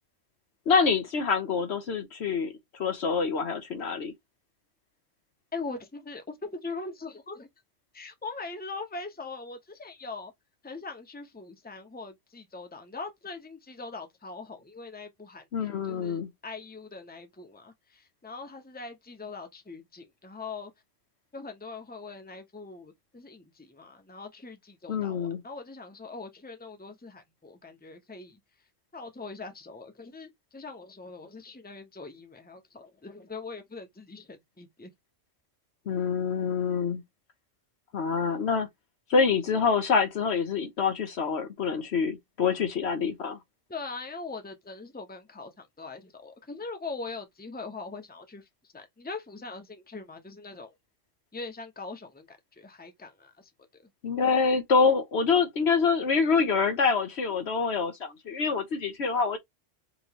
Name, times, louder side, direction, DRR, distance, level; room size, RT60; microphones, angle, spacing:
voice 1, 0.7-2.5 2.8-4.1 15.5-16.3 24.9-25.4 35.9-37.0 37.9-38.7 39.1-43.4 54.0-59.4, left 5 dB, 60° left, 1.0 m, -26 dB
voice 2, 5.5-7.5 7.9-10.3 10.6-20.7 21.3-28.4 28.9-34.9 43.7-48.5 48.7-50.7 51.3-53.5, left 3 dB, 10° left, 0.9 m, -41 dB
5.2 x 3.1 x 2.9 m
omnidirectional pair, 1.3 m